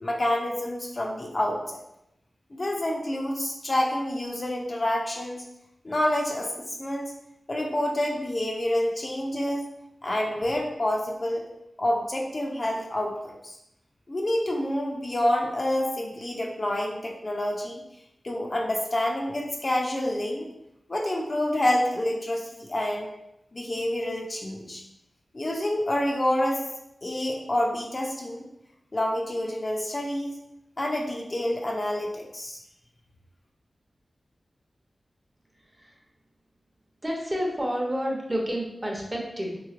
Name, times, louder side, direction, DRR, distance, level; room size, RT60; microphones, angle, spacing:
voice 1, 0.0-1.8 2.5-5.4 5.8-6.5 6.8-7.1 7.5-9.7 10.0-11.5 11.8-13.6 14.1-17.8 18.2-20.5 20.9-23.1 23.5-24.8 25.3-26.6 27.0-28.4 28.9-30.3 30.8-32.6, left 1 dB, 35° left, -1 dB, 0.4 m, -28 dB
voice 2, 37.0-39.6, equal, 20° right, -1 dB, 0.7 m, -29 dB
3.4 x 3.1 x 2.4 m, 0.84 s
wide cardioid pair, 110°, 0 cm